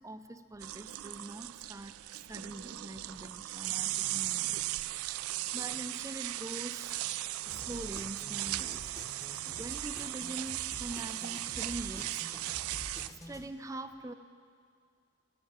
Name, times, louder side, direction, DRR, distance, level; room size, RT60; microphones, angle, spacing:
voice 1, 0.0-2.0 2.2-4.7 5.1-7.0 7.5-9.0 9.4-12.7 13.1-14.1, right 1 dB, 15° right, 10 dB, 0.5 m, -44 dB
sound 1, 0.6-13.1, right 16 dB, 75° right, 0.3 m, -37 dB
sound 2, 7.5-13.5, left 1 dB, 15° left, 0.9 m, -48 dB
16.0 x 9.5 x 8.8 m, 2.3 s
head